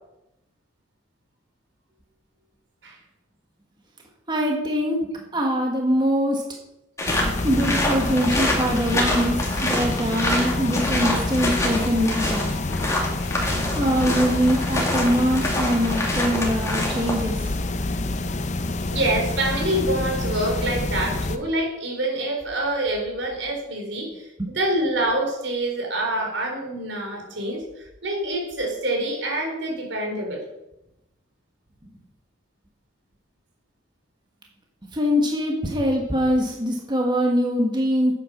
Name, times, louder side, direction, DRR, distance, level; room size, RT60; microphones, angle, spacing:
voice 1, 4.3-6.4 7.4-9.4 9.6-12.5 13.7-17.5 24.4-24.5 34.9-38.1, equal, 25° right, 0 dB, 1.6 m, -23 dB
sound 1, 7.0-17.3, left 1 dB, 15° left, 2.6 m, -26 dB
sound 2, 7.1-21.4, left 2 dB, 40° left, 0.7 m, -27 dB
voice 2, 18.9-24.3 24.5-30.4, right 1 dB, 80° right, 1 dB, 3.8 m, -26 dB
9.7 x 8.4 x 6.1 m, 0.91 s
head